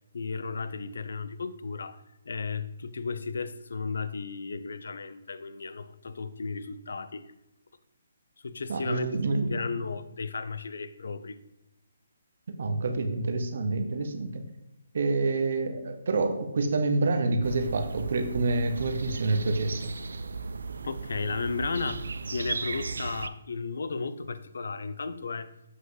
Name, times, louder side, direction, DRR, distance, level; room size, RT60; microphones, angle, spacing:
voice 1, 0.1-7.2 8.4-11.4 20.8-25.5, left 4 dB, 65° left, 13 dB, 0.5 m, -34 dB
voice 2, 8.7-9.6 12.6-14.4 14.9-19.8, right 3 dB, 50° right, 7 dB, 0.9 m, -27 dB
sound 1, 17.4-23.3, right 4 dB, 75° right, 0.4 m, -36 dB
7.8 x 5.4 x 3.8 m, 0.91 s
hypercardioid pair, 175°, 0 cm